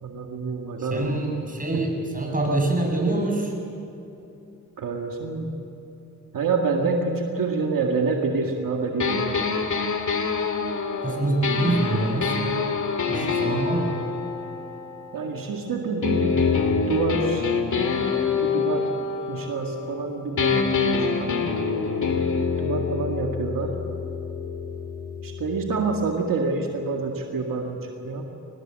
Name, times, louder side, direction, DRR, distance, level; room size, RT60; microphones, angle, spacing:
voice 1, 0.0-1.2 4.8-5.5 6.3-9.3 15.1-16.5 16.8-17.4 18.4-18.9 19.3-21.4 22.6-23.7 25.2-28.2, right 4 dB, 85° right, 1 dB, 2.0 m, -27 dB
voice 2, 0.8-3.5 11.0-12.6 13.1-14.0, right 2 dB, 25° right, 0 dB, 7.0 m, -25 dB
sound 1, 9.0-15.5 16.0-20.0 20.4-26.1, left 5 dB, 65° left, 2.2 m, -26 dB
23.5 x 20.0 x 7.7 m, 2.9 s
cardioid pair, 65°, 33 cm